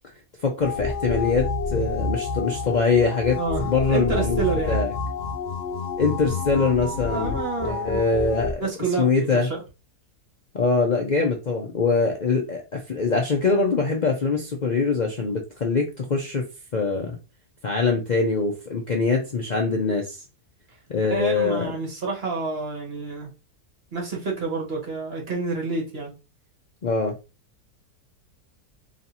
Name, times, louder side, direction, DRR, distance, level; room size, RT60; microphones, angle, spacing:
voice 1, 0.4-4.9 6.0-8.6 9.0-9.5 10.5-16.4 16.7-17.2 17.6-20.2 20.9-21.7 26.8-27.1, left 4 dB, 80° left, 0.4 m, -23 dB
sound 1, 0.6-8.5, left 4 dB, 65° left, 0.8 m, -28 dB
voice 2, 3.4-4.8 7.1-8.0 8.6-9.6 21.1-23.3 23.9-26.1, right 4 dB, 40° right, 1.4 m, -28 dB
3.1 x 2.8 x 4.0 m
omnidirectional pair, 1.7 m